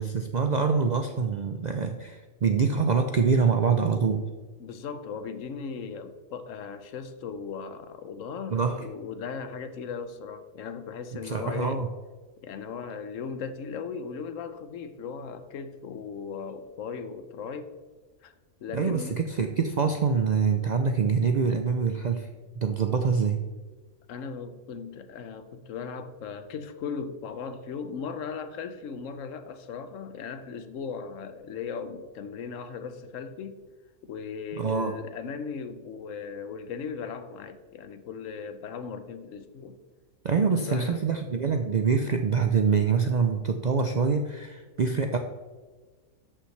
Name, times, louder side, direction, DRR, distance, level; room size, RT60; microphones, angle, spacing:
voice 1, 0.0-4.2 8.5-8.8 11.2-11.9 18.7-22.3 22.6-23.4 34.5-35.0 40.2-45.2, right 5 dB, 60° right, 0.4 m, -25 dB
voice 2, 4.6-11.8 12.4-17.7 18.2-18.3 18.6-19.2 24.1-33.6 34.0-39.8 40.4-41.1, left 6 dB, 80° left, 1.1 m, -37 dB
13.0 x 5.7 x 3.2 m
omnidirectional pair, 1.3 m